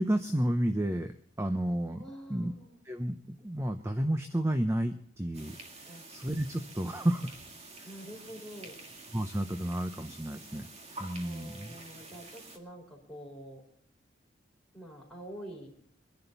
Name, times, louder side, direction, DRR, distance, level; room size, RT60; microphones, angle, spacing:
voice 1, 0.0-2.0 2.3-2.5 2.9-5.6 5.9-7.3 7.8-7.9 9.1-10.7 11.0-11.7, right 1 dB, 15° right, 7 dB, 0.7 m, -31 dB
voice 2, 2.0-2.8 5.9-6.1 7.8-8.8 11.2-13.6 14.7-15.7, equal, ahead, -3 dB, 4.8 m, -46 dB
sound 1, 5.3-12.6, right 2 dB, 35° right, 2.0 m, -48 dB
24.0 x 11.0 x 4.1 m, 0.63 s
head